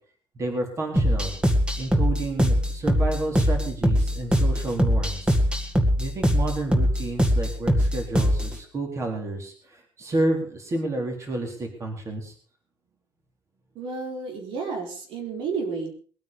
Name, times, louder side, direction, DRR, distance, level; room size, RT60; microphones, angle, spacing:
voice 1, 0.4-1.3 1.8-5.4 6.0-9.5 10.0-12.3, right 2 dB, 35° right, 2 dB, 4.1 m, -30 dB
sound 1, 1.0-8.6, equal, 10° right, 2.1 m, -22 dB
voice 2, 13.7-15.9, right 4 dB, 85° right, 2 dB, 4.2 m, -31 dB
21.5 x 9.2 x 5.3 m, 0.44 s
cardioid pair, 155°, 9 cm